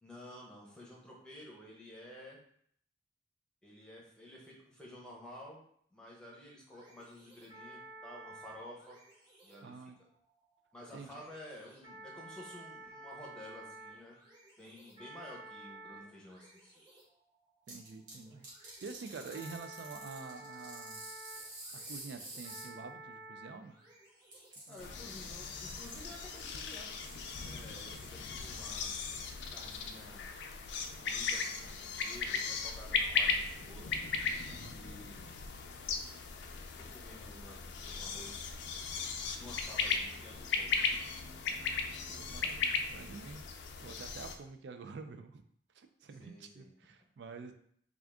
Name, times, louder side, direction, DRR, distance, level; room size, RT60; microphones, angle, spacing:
voice 1, 0.0-2.4 3.6-5.6 5.9-9.0 9.4-9.8 10.7-14.2 14.6-16.8 24.7-26.9 27.4-28.9 29.5-30.3 30.9-33.9 34.6-35.4 36.8-37.6 37.8-38.5 39.0-41.1 46.2-46.7, left 1 dB, 5° left, -4 dB, 0.8 m, -52 dB
sound 1, 6.7-24.7, right 2 dB, 25° right, 1.4 m, -53 dB
voice 2, 9.6-10.0 10.9-11.2 17.7-21.0 21.7-23.8 24.7-24.8 34.5-34.8 42.1-43.4 43.8-45.4 45.7-47.5, right 4 dB, 75° right, 8 dB, 0.4 m, -48 dB
sound 2, 17.7-18.1 18.4-22.7 24.3-28.1, right 1 dB, 50° right, 1.3 m, -50 dB
sound 3, 24.8-44.3, left 5 dB, 80° left, 0.4 m, -37 dB
3.6 x 2.4 x 3.5 m, 0.65 s
head